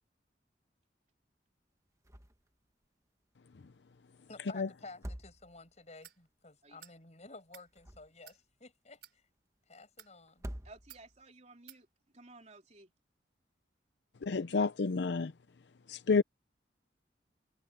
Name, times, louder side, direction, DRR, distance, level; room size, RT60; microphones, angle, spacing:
sound 1, 2.0-2.5 2.8-2.9 4.8-5.8 7.5-8.4 10.3-11.2, equal, 15° right, 1.5 m, -46 dB
voice 1, 4.3-9.2 9.7-10.4, left 3 dB, 40° left, 8.0 m, -53 dB
sound 2, 6.0-6.2 6.8-7.0 7.4-7.7 8.2-8.4 8.9-9.2 9.8-10.1 10.9-11.1 11.7-11.8, right 11 dB, 65° right, 4.7 m, -54 dB
voice 2, 10.6-11.9 12.1-12.9, right 2 dB, 40° right, 3.7 m, -55 dB
voice 3, 14.2-15.3 15.9-16.2, left 4 dB, 70° left, 0.6 m, -29 dB
head